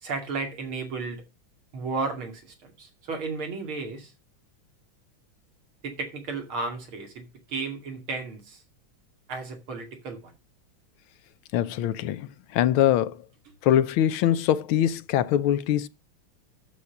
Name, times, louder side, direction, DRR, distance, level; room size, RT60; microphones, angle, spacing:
voice 1, 0.0-1.2 1.7-4.1 5.8-8.6 9.3-10.3, right 4 dB, 80° right, 3.3 m, -33 dB
voice 2, 11.5-13.2 13.6-15.9, left 11 dB, 85° left, 1.5 m, -23 dB
8.4 x 7.3 x 6.6 m
omnidirectional pair, 2.3 m